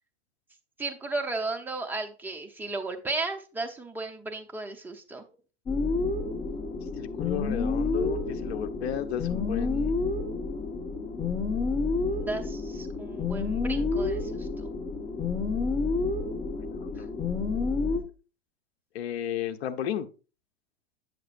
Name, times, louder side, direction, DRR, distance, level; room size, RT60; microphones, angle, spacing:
voice 1, 0.8-5.2 12.1-14.7 17.0-17.1, right 3 dB, 5° right, 2 dB, 0.8 m, -35 dB
sound 1, 5.7-18.0, left 3 dB, 20° left, 1.4 m, -29 dB
voice 2, 7.0-9.9 16.6-17.1 18.9-20.1, left 10 dB, 75° left, 9 dB, 0.9 m, -33 dB
7.9 x 6.6 x 2.5 m, 0.33 s
hypercardioid pair, 120°, 32 cm